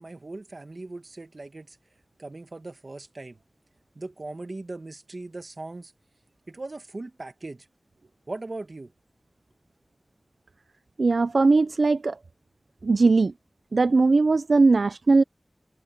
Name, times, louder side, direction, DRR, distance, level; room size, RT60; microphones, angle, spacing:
voice 1, 0.0-1.8 2.2-3.4 4.0-5.9 6.5-7.7 8.3-8.9, right 2 dB, 55° right, 1.9 m, -39 dB
voice 2, 11.0-12.2 12.8-13.3 13.7-15.2, right 3 dB, 85° right, 0.4 m, -19 dB
wide cardioid pair, 60°, 0 cm